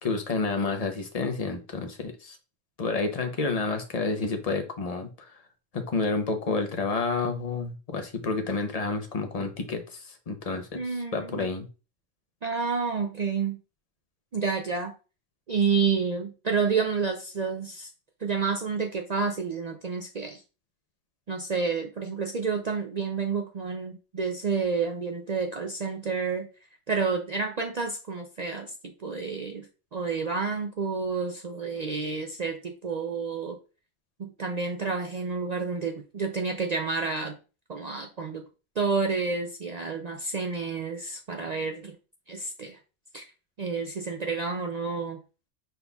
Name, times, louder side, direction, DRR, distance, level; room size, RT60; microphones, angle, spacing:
voice 1, 0.0-2.4 2.8-5.4 5.7-10.8 11.1-11.7, left 3 dB, 35° left, 6 dB, 0.7 m, -29 dB
voice 2, 10.7-11.5 12.4-13.6 14.3-14.9 15.5-17.9 18.2-20.4 21.3-26.5 26.9-33.6 34.2-37.4 37.7-38.5 38.8-42.0 42.3-42.8 43.1-43.3 43.6-45.2, right 5 dB, 60° right, 3 dB, 0.4 m, -29 dB
5.2 x 4.1 x 2.3 m, 0.33 s
omnidirectional pair, 1.3 m